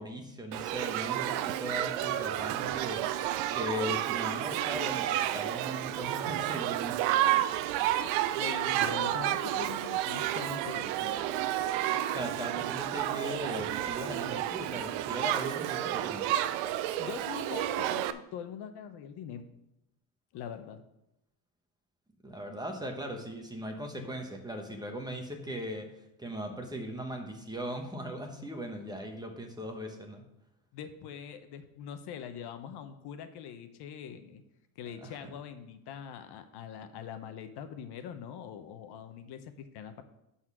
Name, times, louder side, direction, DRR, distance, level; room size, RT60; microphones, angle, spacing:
voice 1, 0.0-3.1 3.5-7.0 12.1-16.3 22.2-25.9 26.2-30.2 35.0-35.3, equal, 10° right, 3 dB, 1.1 m, -39 dB
Shout / Human group actions, 0.5-18.1, right 12 dB, 90° right, 0.6 m, -31 dB
voice 2, 8.4-11.2 16.9-19.4 20.3-20.8 30.7-34.4 34.8-40.0, left 8 dB, 60° left, 9 dB, 0.9 m, -43 dB
11.0 x 4.3 x 6.1 m, 0.86 s
cardioid pair, 135°, 44 cm